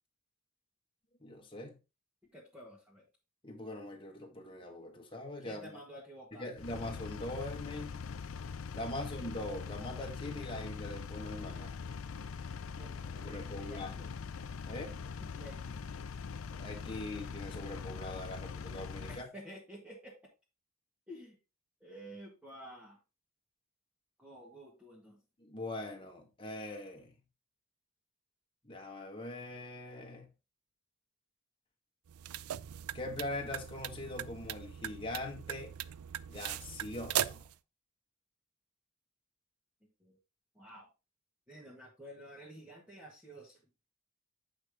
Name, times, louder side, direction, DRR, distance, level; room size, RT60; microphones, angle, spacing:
voice 1, 1.2-1.8 3.4-5.7 6.3-8.0 8.7-11.7 13.2-14.1 14.6-15.0 16.5-19.3 25.4-27.2 28.6-30.3 32.9-35.7 36.3-37.4, left 1 dB, 25° left, 1.6 m, -42 dB
voice 2, 2.3-3.0 5.4-6.5 12.8-14.1 15.2-15.8 19.1-20.2 21.1-21.3 21.8-23.0 24.2-25.2 39.8-40.2 40.5-40.9 41.5-43.6, equal, 5° right, 1.7 m, -51 dB
Engine, 6.6-19.2, left 5 dB, 70° left, 0.5 m, -42 dB
sound 1, 32.1-37.5, right 11 dB, 85° right, 0.4 m, -39 dB
8.7 x 5.0 x 3.7 m
head